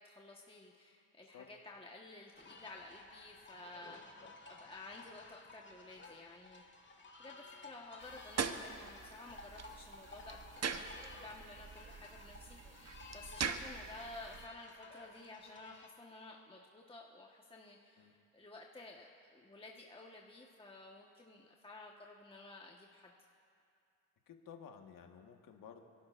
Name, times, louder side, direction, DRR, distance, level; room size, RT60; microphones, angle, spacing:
voice 1, 0.0-4.0 4.4-6.6 7.2-23.1, left 2 dB, 15° left, -1 dB, 1.4 m, -53 dB
sound 1, 2.3-15.9, left 3 dB, 35° left, 1.9 m, -55 dB
sound 2, 8.0-14.5, right 6 dB, 45° right, 1.1 m, -43 dB
voice 2, 24.3-25.8, left 7 dB, 70° left, 4 dB, 1.6 m, -54 dB
28.0 x 11.5 x 2.6 m, 2.4 s
supercardioid pair, 60°, 35 cm